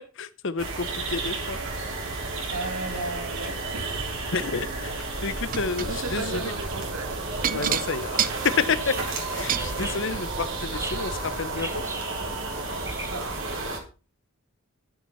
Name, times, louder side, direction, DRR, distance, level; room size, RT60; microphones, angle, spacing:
voice 1, 0.0-1.6 4.3-6.5 7.5-11.8, left 4 dB, 55° left, 13 dB, 1.0 m, -30 dB
sound 1, 0.6-13.8, right 3 dB, 60° right, 4.7 m, -32 dB
voice 2, 2.5-4.3 5.3-5.5 5.8-7.7 13.1-13.5, right 3 dB, 85° right, 6 dB, 2.6 m, -36 dB
sound 2, 5.5-5.9 7.4-9.7 10.7-10.8 11.2-11.3, right 10 dB, 40° right, 0.6 m, -28 dB
sound 3, 8.3-13.8, right 2 dB, 10° right, 1.5 m, -40 dB
11.5 x 9.8 x 5.6 m, 0.34 s
head